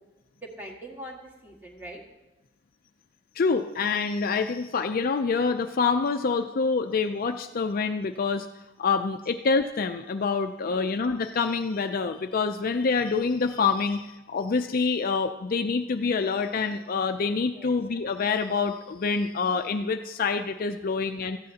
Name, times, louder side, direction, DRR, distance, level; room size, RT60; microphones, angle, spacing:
voice 1, 0.4-2.0 10.7-11.0 17.5-17.7 20.9-21.2, right 1 dB, 10° right, -1 dB, 1.6 m, -43 dB
voice 2, 3.4-8.5 8.8-21.4, left 4 dB, 45° left, 7 dB, 0.4 m, -26 dB
17.0 x 13.5 x 2.8 m, 1.1 s
head